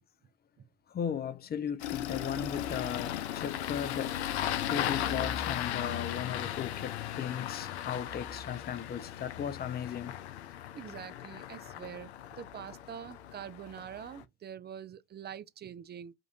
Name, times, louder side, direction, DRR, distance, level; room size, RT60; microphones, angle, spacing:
voice 1, 0.9-4.1 4.7-10.2, left 8 dB, 30° left, 0.6 m, -36 dB
Engine starting, 1.8-14.2, left 11 dB, 85° left, 0.5 m, -37 dB
voice 2, 10.7-12.1 12.4-16.1, right 9 dB, 30° right, 0.6 m, -44 dB
5.1 x 2.6 x 2.7 m
hypercardioid pair, 60°, 33 cm